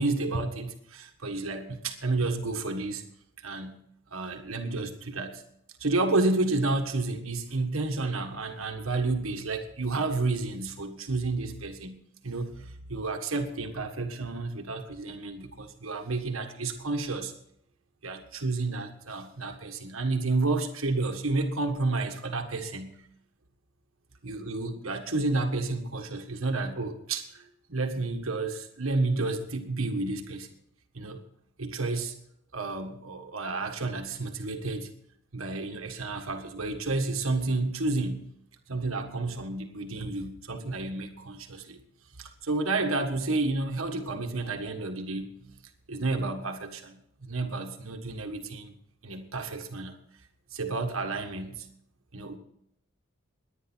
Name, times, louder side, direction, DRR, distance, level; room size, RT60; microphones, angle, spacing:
voice 1, 0.0-3.0 3.4-3.8 4.1-5.4 5.8-11.9 12.2-17.3 18.0-23.0 24.2-30.5 30.9-31.2 31.6-32.1 32.5-34.9 35.3-38.2 38.7-41.8 42.2-45.3 45.9-48.7 49.0-50.0 50.5-51.7 52.1-52.4, right 3 dB, 75° right, 5 dB, 1.6 m, -31 dB
18.5 x 11.0 x 4.5 m, 0.73 s
head